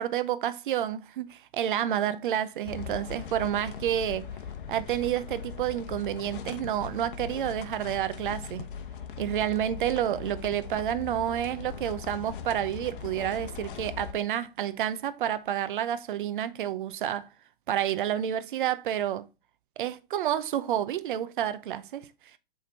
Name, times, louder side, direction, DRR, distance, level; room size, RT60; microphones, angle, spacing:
voice 1, 0.0-4.3 4.7-8.7 9.2-17.3 17.7-19.3 19.8-22.1, right 11 dB, 60° right, 0.8 m, -29 dB
sound 1, 2.6-14.1, left 7 dB, 60° left, 1.0 m, -40 dB
7.7 x 3.6 x 4.1 m
hypercardioid pair, 130°, 29 cm